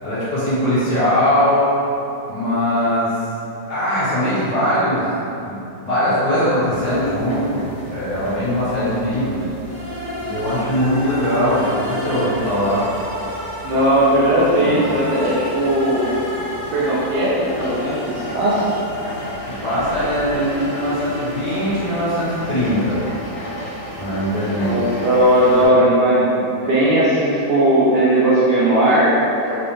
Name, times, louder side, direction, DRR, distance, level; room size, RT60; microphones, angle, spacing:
voice 1, 0.0-1.7 2.2-3.1 3.7-5.1 5.4-9.5 10.2-12.9 19.5-23.0 24.0-24.8 25.6-25.8 26.6-26.7, equal, 55° left, -13 dB, 1.9 m, -21 dB
sound 1, 6.7-25.7, equal, 70° left, 1.8 m, -34 dB
sound 2, 9.6-23.5, left 1 dB, 50° right, 1.3 m, -32 dB
voice 2, 13.6-16.1 16.7-18.7 24.5-29.6, right 1 dB, 70° right, -7 dB, 1.1 m, -17 dB
4.7 x 2.0 x 3.0 m, 2.9 s
omnidirectional pair, 2.1 m